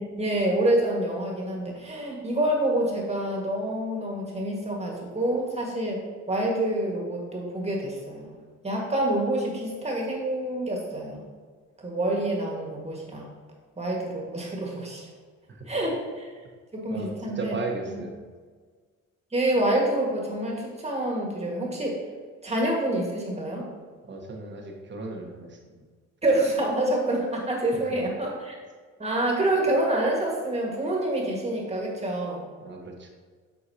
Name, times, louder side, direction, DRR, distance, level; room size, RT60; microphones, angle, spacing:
voice 1, 0.0-8.4 8.6-11.2 11.8-13.3 13.8-15.1 15.7-16.3 16.7-17.5 17.9-18.0 19.3-22.0 22.4-23.6 26.2-28.6 29.0-32.5, right 1 dB, 20° right, -2 dB, 1.7 m, -27 dB
voice 2, 16.9-18.2 24.0-25.6 32.6-33.1, right 3 dB, 40° right, 1 dB, 1.2 m, -35 dB
8.0 x 4.6 x 2.8 m, 1.5 s
cardioid pair, 90°, 30 cm